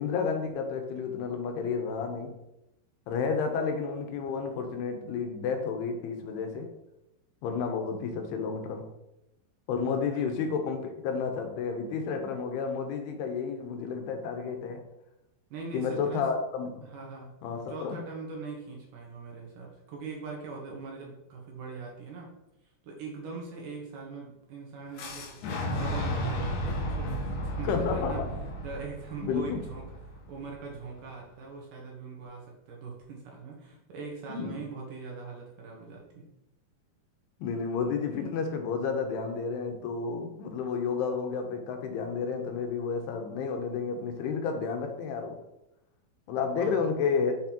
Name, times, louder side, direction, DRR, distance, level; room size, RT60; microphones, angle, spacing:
voice 1, 0.0-2.4 3.1-6.7 7.4-8.9 9.7-14.8 15.7-16.8 17.4-18.0 27.6-28.3 29.2-29.6 34.3-34.6 37.4-45.4 46.3-47.3, left 5 dB, 85° left, 5 dB, 2.9 m, -31 dB
voice 2, 15.5-16.3 16.8-17.3 17.7-22.3 22.8-28.3 28.6-36.3 46.5-46.7, right 4 dB, 65° right, -1 dB, 2.5 m, -41 dB
Boom, 25.0-30.9, equal, 70° left, 2.2 m, -33 dB
7.1 x 5.7 x 2.9 m, 0.88 s
omnidirectional pair, 4.5 m